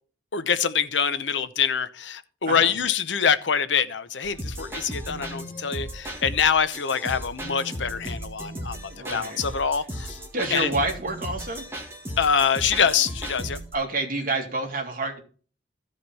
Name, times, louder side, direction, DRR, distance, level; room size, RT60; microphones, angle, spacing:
voice 1, 0.3-8.8 9.1-10.2 10.5-10.7 12.2-13.6, left 7 dB, 80° left, 0.8 m, -25 dB
sound 1, 4.2-13.7, equal, 15° right, 1.9 m, -36 dB
voice 2, 8.9-9.4 10.3-11.6 13.7-15.2, right 2 dB, 50° right, 2.2 m, -28 dB
15.0 x 5.0 x 4.2 m
head